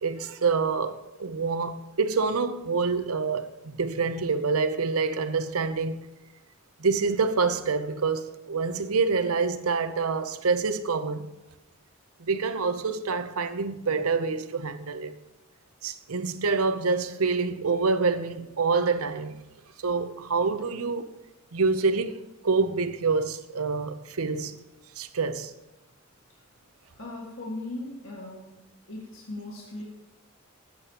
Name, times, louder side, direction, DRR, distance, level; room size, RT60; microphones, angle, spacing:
voice 1, 0.0-6.0 6.8-11.3 12.2-15.2 15.8-19.4 19.8-21.1 21.5-24.6 25.0-25.5, right 4 dB, 85° right, 0.7 m, -27 dB
voice 2, 27.0-28.6 28.9-29.8, left 2 dB, 60° left, 1.8 m, -38 dB
17.5 x 8.5 x 2.9 m
head